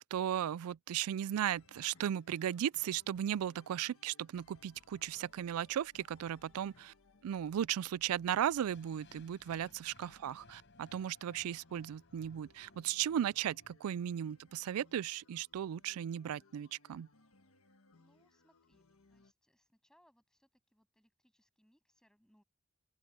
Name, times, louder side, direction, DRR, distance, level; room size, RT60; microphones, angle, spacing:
voice 1, 0.1-6.9 7.2-17.1, right 10 dB, 85° right, 0.3 m, -36 dB
sound 1, 1.4-19.3, left 3 dB, 75° left, 1.6 m, -66 dB
sound 2, 8.7-14.7, left 3 dB, 55° left, 5.3 m, -63 dB
voice 2, 17.9-22.4, equal, 5° left, 7.9 m, -72 dB
open air
head